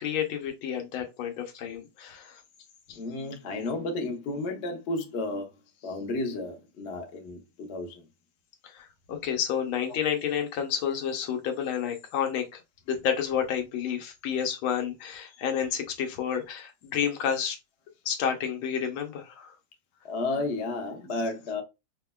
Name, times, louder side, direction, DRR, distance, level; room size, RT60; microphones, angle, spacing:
voice 1, 0.0-2.4 2.9-3.0 8.6-12.6 12.9-17.6 18.0-19.5, left 8 dB, 85° left, 1.6 m, -30 dB
voice 2, 2.9-5.5 5.8-8.0 20.0-21.6, left 2 dB, 60° left, 0.7 m, -32 dB
5.1 x 2.1 x 2.2 m
omnidirectional pair, 2.2 m